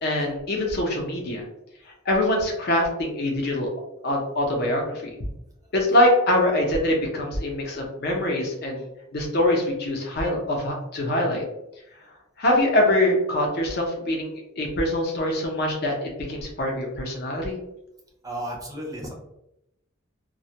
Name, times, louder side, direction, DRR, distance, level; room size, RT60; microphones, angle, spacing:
voice 1, 0.0-1.5 2.1-3.7 4.0-5.1 5.7-8.9 9.1-11.4 12.4-17.6, left 1 dB, 55° left, 0 dB, 0.6 m, -24 dB
voice 2, 18.2-19.1, right 1 dB, 20° right, -1 dB, 0.5 m, -33 dB
2.2 x 2.1 x 2.7 m, 0.84 s
head